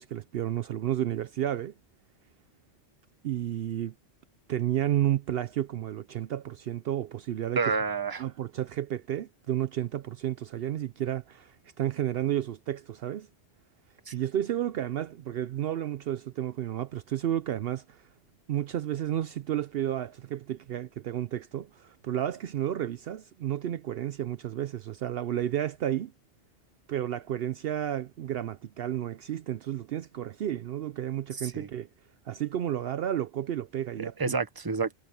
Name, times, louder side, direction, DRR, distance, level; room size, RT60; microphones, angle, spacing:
voice 1, 0.0-1.7 3.2-3.9 4.5-7.7 8.2-13.3 14.1-18.1 18.5-26.1 26.9-31.9 32.3-34.3, right 11 dB, 65° right, 0.8 m, -31 dB
voice 2, 7.6-8.2 14.1-14.2 31.4-31.7 34.0-34.9, right 4 dB, 20° right, 1.0 m, -29 dB
omnidirectional pair, 1.1 m